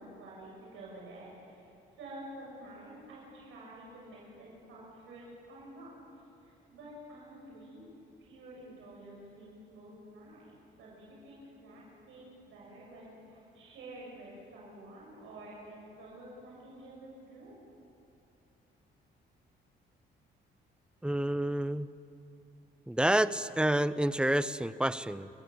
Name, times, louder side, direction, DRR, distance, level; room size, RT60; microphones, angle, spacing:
voice 1, 0.0-1.7 2.0-7.9 8.2-17.6, right 1 dB, 80° right, -4 dB, 7.3 m, -49 dB
voice 2, 21.0-21.9 22.9-25.3, right 1 dB, 5° right, 15 dB, 0.7 m, -28 dB
29.5 x 15.0 x 8.1 m, 2.7 s
cardioid pair, 90°, 20 cm